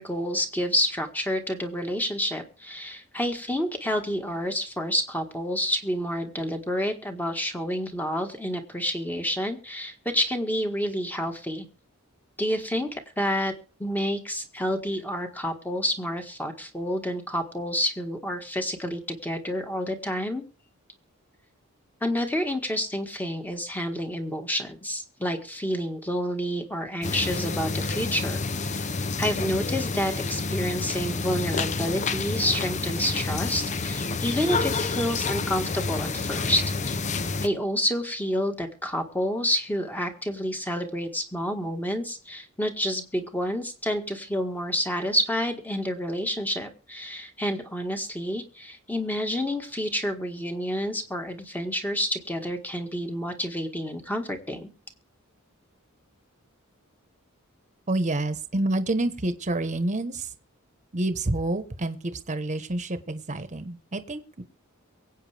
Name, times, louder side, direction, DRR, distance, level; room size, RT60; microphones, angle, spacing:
voice 1, 0.0-11.7 12.4-12.9 13.2-13.5 13.8-20.4 22.0-28.9 29.2-36.6 37.4-54.7, equal, 10° left, 5 dB, 1.7 m, -29 dB
sound 1, 27.0-37.5, left 4 dB, 35° left, 0.6 m, -29 dB
voice 2, 57.9-60.3 60.9-64.4, right 2 dB, 35° right, 10 dB, 1.2 m, -28 dB
23.5 x 8.4 x 3.5 m, 0.38 s
head